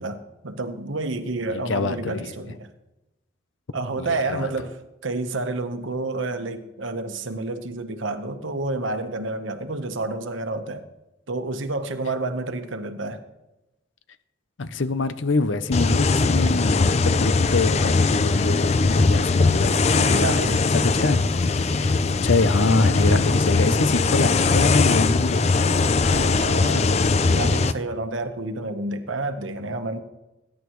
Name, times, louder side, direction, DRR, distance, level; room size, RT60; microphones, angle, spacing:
voice 1, 0.0-2.7 3.7-10.8 11.3-13.2 20.1-20.7 26.1-30.0, right 2 dB, 80° right, 8 dB, 1.1 m, -29 dB
voice 2, 1.5-2.2 4.0-4.5 14.6-20.1 20.7-21.2 21.7-22.0 22.2-26.4 26.7-27.2, left 3 dB, 75° left, 13 dB, 0.7 m, -25 dB
sound 1, 15.7-27.7, left 3 dB, 35° left, 0.4 m, -20 dB
20.5 x 10.5 x 3.1 m, 0.97 s
head